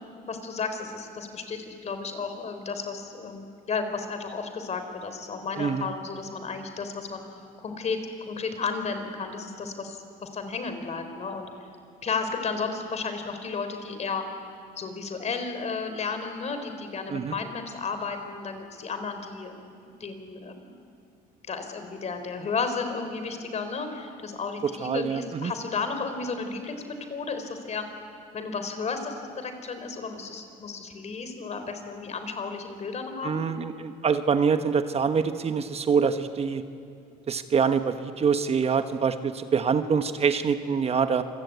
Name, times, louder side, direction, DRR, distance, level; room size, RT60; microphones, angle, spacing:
voice 1, 0.0-7.2 7.6-8.0 8.3-11.5 12.0-14.3 14.8-19.5 20.0-20.8 21.5-27.8 28.3-33.4, left 4 dB, 40° left, 7 dB, 3.9 m, -33 dB
voice 2, 5.6-5.9 17.1-17.3 24.8-25.5 33.2-36.6 37.3-41.2, right 6 dB, 40° right, 9 dB, 1.2 m, -25 dB
27.0 x 21.5 x 9.4 m, 2.4 s
cardioid pair, 110°, 17 cm